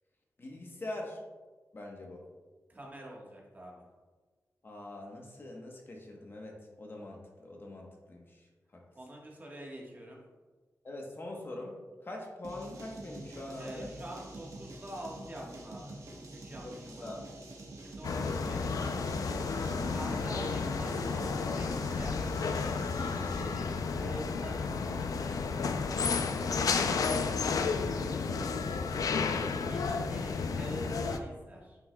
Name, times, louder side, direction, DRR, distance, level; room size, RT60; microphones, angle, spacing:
voice 1, 0.4-1.2 1.7-2.2 4.6-8.4 8.7-8.8 10.8-11.8 12.0-13.9 16.6-17.2 18.1-18.4 19.6-20.5 27.0-28.7, left 1 dB, 40° left, 0 dB, 1.0 m, -44 dB
voice 2, 2.7-3.8 8.9-10.2 13.6-15.9 16.3-17.1 17.8-19.0 19.9-22.3 22.9-25.2 29.5-31.8, equal, 30° right, -2 dB, 1.3 m, -45 dB
sound 1, 12.4-23.6, right 2 dB, 65° right, 1.1 m, -47 dB
sound 2, 18.0-31.2, left 5 dB, 80° left, 0.4 m, -32 dB
9.4 x 5.5 x 2.2 m, 1.3 s
wide cardioid pair, 135°, 6 cm